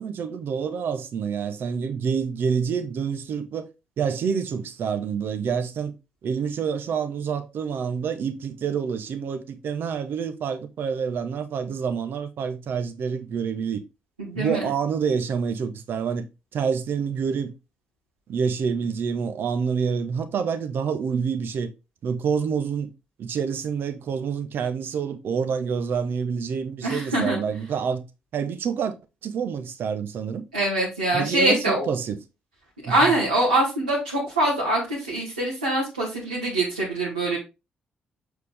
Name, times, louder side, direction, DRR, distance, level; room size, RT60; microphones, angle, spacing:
voice 1, 0.0-3.7 4.0-5.9 6.2-13.8 14.3-16.2 16.5-17.5 18.3-21.7 22.0-22.9 23.2-28.0 28.3-28.9 29.2-30.4 31.1-32.2 32.8-33.1, right 6 dB, 55° right, 1.0 m, -27 dB
voice 2, 14.2-14.7 26.8-27.4 30.5-31.9 32.8-37.4, right 1 dB, 85° right, 1.9 m, -24 dB
7.0 x 4.8 x 3.5 m
figure-of-eight pair, 40°, 4 cm